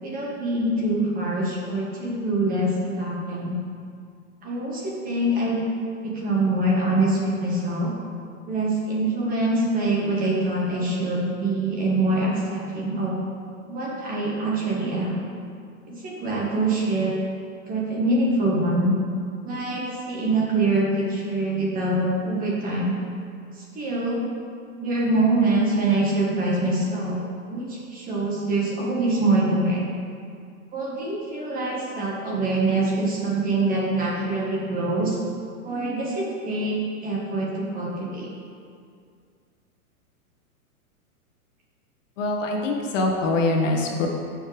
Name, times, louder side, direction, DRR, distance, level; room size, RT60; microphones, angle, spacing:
voice 1, 0.0-3.6 4.4-5.6 6.0-7.9 8.5-13.2 13.7-15.1 15.9-17.2 17.7-18.9 19.4-23.0 23.6-24.2 24.8-27.2 27.5-29.8 30.7-35.2 35.6-36.8 37.0-38.3, right 2 dB, 20° right, -4 dB, 1.5 m, -24 dB
voice 2, 42.2-44.1, left 2 dB, 55° left, 1 dB, 1.5 m, -23 dB
14.0 x 6.6 x 3.4 m, 2.3 s
hypercardioid pair, 150°, 45 cm